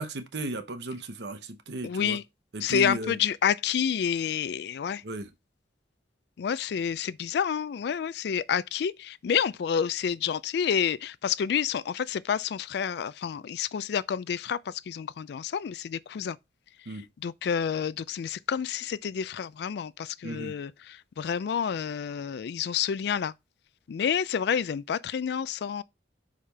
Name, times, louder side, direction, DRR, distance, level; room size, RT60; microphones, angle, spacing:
voice 1, 0.0-2.2 2.5-3.2 5.0-5.3 16.9-17.0 20.2-20.5, right 2 dB, 70° right, 0.8 m, -35 dB
voice 2, 1.8-2.2 2.6-5.0 6.4-16.4 17.2-23.3 23.9-25.8, left 7 dB, 65° left, 0.3 m, -29 dB
5.6 x 5.0 x 3.4 m
head